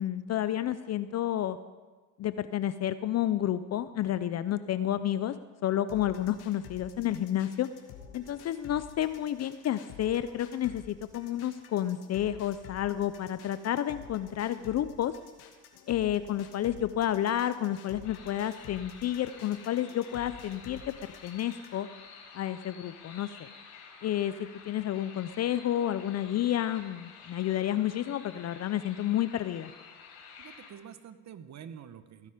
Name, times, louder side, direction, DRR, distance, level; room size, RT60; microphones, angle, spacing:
voice 1, 0.0-1.6 2.2-5.3 5.6-7.7 8.1-15.1 15.9-21.9 22.3-23.5 24.0-24.3 24.6-29.7, left 11 dB, 40° left, 13 dB, 0.5 m, -30 dB
sound 1, 5.9-21.9, left 7 dB, 60° left, 2.2 m, -50 dB
sound 2, 18.0-30.7, left 6 dB, 75° left, 4.7 m, -51 dB
voice 2, 30.4-32.3, right 8 dB, 40° right, 12 dB, 1.1 m, -47 dB
16.5 x 9.9 x 5.1 m, 1.3 s
supercardioid pair, 95°, 42 cm